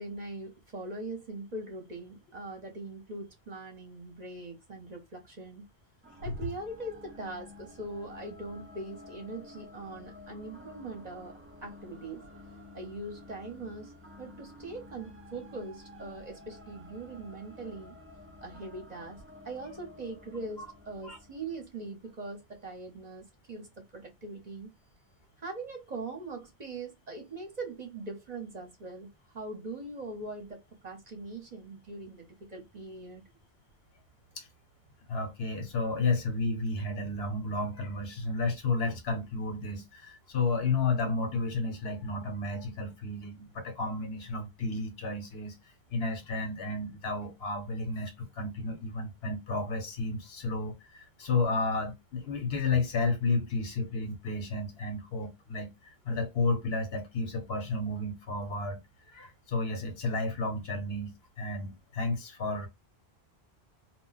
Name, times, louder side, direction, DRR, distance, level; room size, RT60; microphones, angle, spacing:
voice 1, 0.0-5.6 6.2-12.3 12.7-18.0 18.4-24.7 25.4-33.2, right 2 dB, 45° right, 0.8 m, -41 dB
sound 1, 6.0-22.2, left 2 dB, 20° right, 0.4 m, -51 dB
voice 2, 35.1-45.5 45.9-55.7 56.0-58.8 59.1-62.7, left 3 dB, 75° left, 1.1 m, -32 dB
2.4 x 2.1 x 3.9 m
omnidirectional pair, 1.1 m